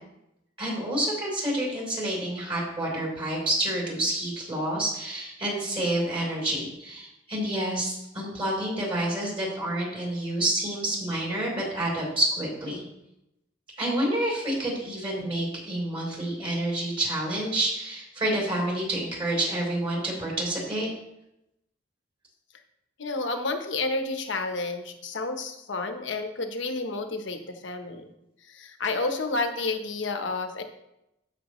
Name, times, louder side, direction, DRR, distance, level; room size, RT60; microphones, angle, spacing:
voice 1, 0.6-12.8 13.8-20.9, right 1 dB, 30° right, -4 dB, 3.8 m, -28 dB
voice 2, 23.0-28.0 28.4-30.6, left 3 dB, 70° left, 6 dB, 1.1 m, -30 dB
15.5 x 5.8 x 3.2 m, 0.86 s
head